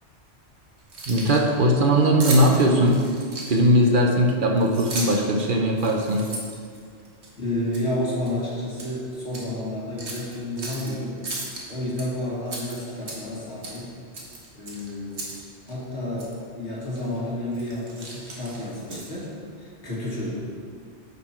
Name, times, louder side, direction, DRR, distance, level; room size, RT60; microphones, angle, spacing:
Keys jangling, 0.8-1.5 2.2-3.8 4.6-5.3 5.7-7.3 7.7-7.9 8.3-8.9 9.3-9.4 10.0-10.9 11.2-12.0 12.5-13.4 13.6-13.8 14.1-15.4 15.7-15.8 16.2-16.3 16.9-17.2 17.5-19.3, right 2 dB, 75° right, 1.7 m, -35 dB
voice 1, 1.1-3.0 3.5-6.3, equal, 50° right, 1 dB, 0.9 m, -19 dB
voice 2, 7.4-11.2 11.7-13.9 14.5-15.3 15.7-20.4, left 1 dB, 80° left, -6 dB, 2.5 m, -30 dB
9.3 x 5.8 x 4.4 m, 2.1 s
omnidirectional pair, 1.2 m